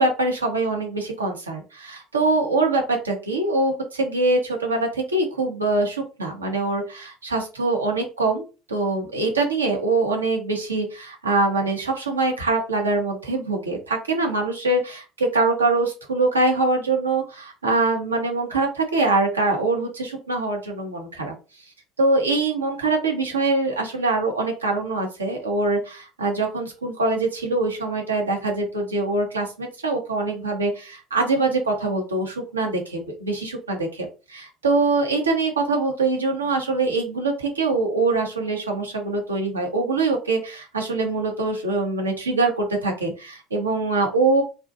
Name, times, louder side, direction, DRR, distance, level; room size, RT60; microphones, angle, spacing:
voice 1, 0.0-21.3 22.0-44.4, right 3 dB, 85° right, 2 dB, 0.6 m, -23 dB
2.5 x 2.2 x 2.5 m, 0.32 s
figure-of-eight pair, 60°, 0 cm